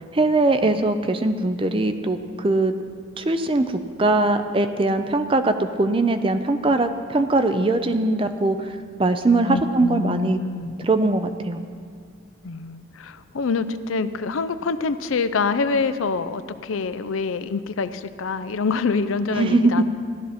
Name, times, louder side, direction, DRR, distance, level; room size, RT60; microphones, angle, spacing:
voice 1, 0.1-2.7 3.2-3.7 4.0-8.6 9.0-10.4 10.8-11.6 19.3-19.7, right 2 dB, 25° right, 9 dB, 0.5 m, -21 dB
voice 2, 9.5-10.9 12.4-19.8, left 4 dB, 85° left, 12 dB, 0.5 m, -26 dB
15.5 x 12.0 x 4.3 m, 2.1 s
head